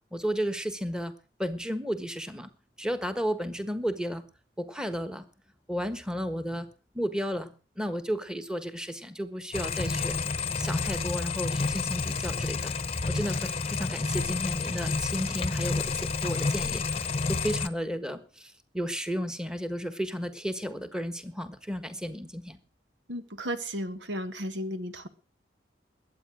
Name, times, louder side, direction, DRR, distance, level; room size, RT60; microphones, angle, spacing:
voice 1, 0.1-1.1 1.4-2.5 2.8-4.2 4.6-5.2 5.7-6.7 6.9-10.2 10.6-12.7 13.1-22.6, equal, 5° right, 10 dB, 1.4 m, -33 dB
sound 1, 9.5-17.7, left 4 dB, 35° left, 0.9 m, -30 dB
voice 2, 23.1-25.1, equal, 85° right, 10 dB, 1.6 m, -34 dB
21.5 x 8.7 x 6.2 m, 0.37 s
head